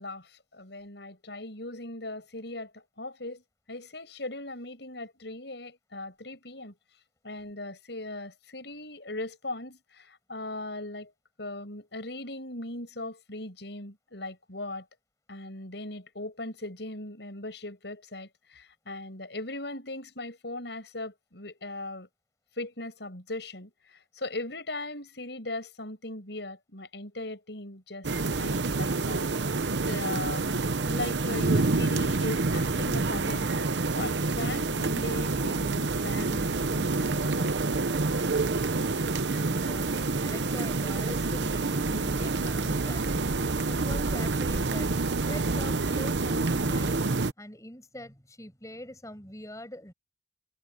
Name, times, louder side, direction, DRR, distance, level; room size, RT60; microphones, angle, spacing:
voice 1, 0.0-3.4 3.7-6.8 7.2-11.1 11.4-14.8 15.3-22.1 22.6-33.5 33.9-37.7, left 2 dB, 70° left, 6.8 m, -39 dB
sound 1, 28.0-47.3, right 3 dB, 75° right, 0.9 m, -28 dB
voice 2, 39.2-39.9 40.2-44.9 45.2-47.0 47.4-49.9, left 1 dB, 20° left, 7.3 m, -43 dB
head